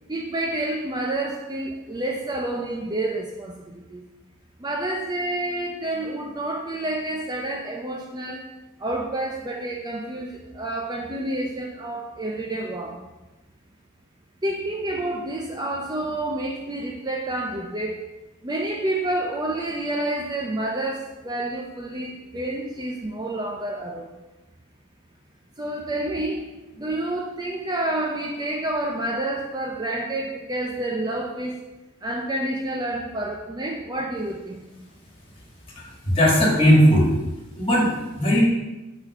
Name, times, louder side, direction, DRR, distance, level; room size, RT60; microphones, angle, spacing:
voice 1, 0.1-4.0 4.6-8.5 8.8-13.0 14.4-18.0 18.4-24.1 25.6-26.5 26.8-31.6 32.0-34.6, right 1 dB, 20° right, 1 dB, 0.6 m, -29 dB
voice 2, 35.8-37.1 37.6-38.4, equal, 25° left, -3 dB, 2.4 m, -18 dB
8.5 x 4.4 x 5.3 m, 1.0 s
head